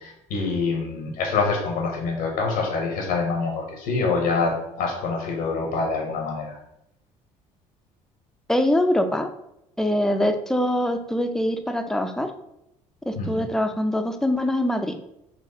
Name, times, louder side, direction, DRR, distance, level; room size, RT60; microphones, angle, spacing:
voice 1, 0.0-6.6 13.2-13.5, left 4 dB, 75° left, 0 dB, 0.7 m, -26 dB
voice 2, 8.5-9.3 9.8-12.3 13.1-15.0, left 1 dB, 5° left, 7 dB, 0.4 m, -23 dB
3.9 x 2.3 x 2.7 m, 0.81 s
hypercardioid pair, 65°, 16 cm